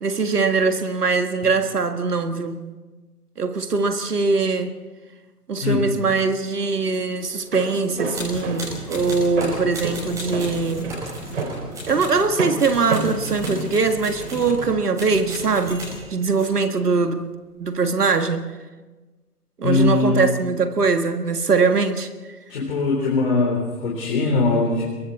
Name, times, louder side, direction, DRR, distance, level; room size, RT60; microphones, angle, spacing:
voice 1, 0.0-2.6 3.4-4.8 5.5-10.9 11.9-17.3 17.6-18.5 19.6-22.1, right 4 dB, 75° right, 1.8 m, -22 dB
Walk footsteps, 7.3-14.5, right 3 dB, 50° right, 3.5 m, -30 dB
sound 1, 8.2-12.3 12.6-16.5, equal, 5° right, 5.9 m, -34 dB
voice 2, 19.6-20.2 22.5-24.9, left 3 dB, 35° left, 3.8 m, -21 dB
29.0 x 22.5 x 4.2 m
figure-of-eight pair, 155°, 47 cm